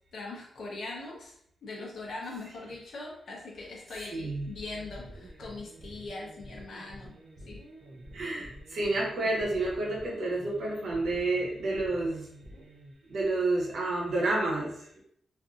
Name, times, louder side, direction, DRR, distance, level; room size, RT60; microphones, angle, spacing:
voice 1, 0.1-1.3 1.6-7.2 7.5-7.6, left 2 dB, 60° left, -2 dB, 0.7 m, -41 dB
voice 2, 4.1-4.5 8.1-12.3 13.1-15.0, right 2 dB, 75° right, -2 dB, 0.9 m, -30 dB
sound 1, 4.5-12.9, right 1 dB, 40° right, 0.4 m, -49 dB
2.5 x 2.5 x 2.4 m, 0.68 s
wide cardioid pair, 165°, 0 cm